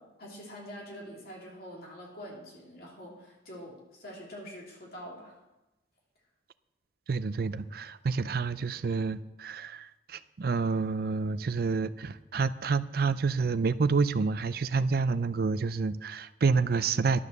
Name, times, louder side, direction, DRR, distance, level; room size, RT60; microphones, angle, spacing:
voice 1, 0.0-5.3, equal, 55° left, -3 dB, 3.2 m, -45 dB
voice 2, 7.1-17.2, right 4 dB, 55° right, 14 dB, 0.4 m, -28 dB
11.5 x 7.3 x 6.6 m, 0.99 s
head